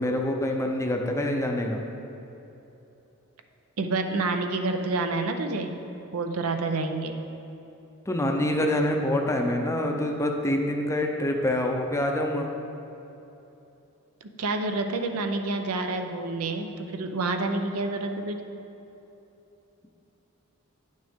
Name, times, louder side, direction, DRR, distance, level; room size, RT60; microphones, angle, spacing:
voice 1, 0.0-1.8 8.1-12.5, left 1 dB, 15° left, 2 dB, 0.5 m, -26 dB
voice 2, 3.8-5.8 6.1-7.2 14.2-18.4, right 3 dB, 70° right, 6 dB, 0.6 m, -28 dB
9.9 x 6.3 x 3.6 m, 3.0 s
head